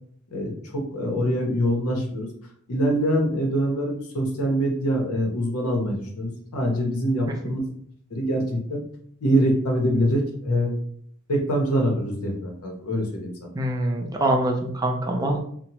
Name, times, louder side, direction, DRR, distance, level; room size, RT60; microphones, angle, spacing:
voice 1, 0.3-2.3 2.7-7.7 8.1-8.8 9.2-10.7 11.3-13.3, equal, 80° left, 1 dB, 0.8 m, -24 dB
voice 2, 13.6-15.4, right 1 dB, 15° right, 2 dB, 0.3 m, -24 dB
2.8 x 2.1 x 2.9 m, 0.63 s
head